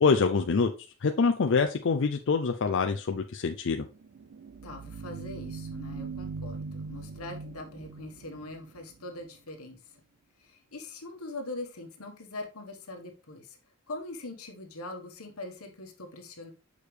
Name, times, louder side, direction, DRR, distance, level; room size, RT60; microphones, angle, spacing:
voice 1, 0.0-0.7 1.0-3.8, left 4 dB, 55° left, 5 dB, 0.5 m, -25 dB
sound 1, 3.9-9.4, right 4 dB, 60° right, 0.4 m, -41 dB
voice 2, 4.6-9.8 10.4-13.6 13.9-16.5, left 2 dB, 85° left, 4 dB, 1.4 m, -42 dB
6.5 x 4.9 x 3.3 m, 0.31 s
head